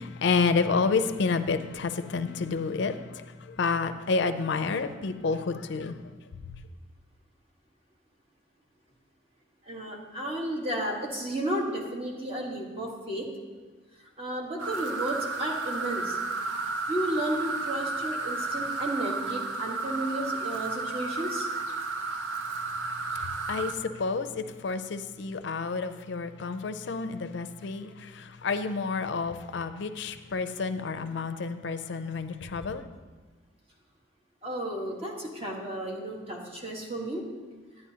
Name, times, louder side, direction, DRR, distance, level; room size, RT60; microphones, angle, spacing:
voice 1, 0.0-6.1 23.1-32.8, left 4 dB, 65° left, 9 dB, 0.5 m, -30 dB
voice 2, 9.6-13.3 14.2-16.2 16.9-21.5 34.4-37.2, right 1 dB, 30° right, -1 dB, 1.4 m, -33 dB
sound 1, 14.6-23.7, right 3 dB, 80° right, 0.7 m, -32 dB
11.0 x 9.7 x 2.8 m, 1.4 s
head